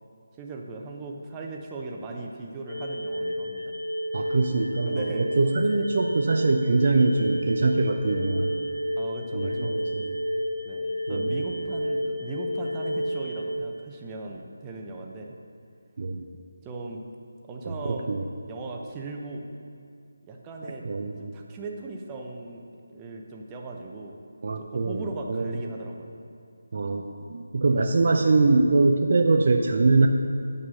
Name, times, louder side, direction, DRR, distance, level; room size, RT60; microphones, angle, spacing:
voice 1, 0.3-3.7 4.8-5.3 9.0-9.8 10.6-15.3 16.6-17.1 17.5-18.2 18.4-19.5 20.3-20.8 21.2-22.6 22.9-24.2 24.6-26.1, right 3 dB, 15° right, 0 dB, 0.8 m, -38 dB
sound 1, 2.7-13.6, equal, 75° left, 1.2 m, -31 dB
voice 2, 4.1-8.5 9.3-10.1 11.1-11.3 16.0-16.2 17.6-18.2 20.8-21.3 24.4-25.0 25.3-25.6 26.7-30.1, right 3 dB, 50° right, 3 dB, 0.6 m, -23 dB
8.8 x 5.4 x 6.4 m, 2.5 s
figure-of-eight pair, 160°, 0 cm